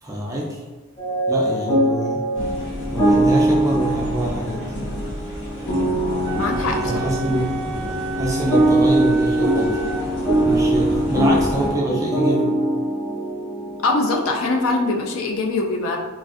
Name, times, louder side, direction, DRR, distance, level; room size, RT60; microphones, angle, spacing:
voice 1, 0.0-0.6 1.3-2.2 2.9-4.9 6.8-7.5 8.2-9.8 10.4-12.5, right 1 dB, 15° right, -3 dB, 0.4 m, -25 dB
sound 1, 1.0-15.2, right 1 dB, 25° left, 0.8 m, -22 dB
sound 2, 2.3-11.7, equal, 85° left, 1.2 m, -32 dB
Wind instrument woodwind instrument, 6.2-10.1, right 3 dB, 90° right, 0.4 m, -30 dB
voice 2, 6.3-7.1 13.8-16.0, left 3 dB, 60° left, 1 dB, 0.4 m, -22 dB
3.1 x 2.5 x 2.4 m, 1.3 s
head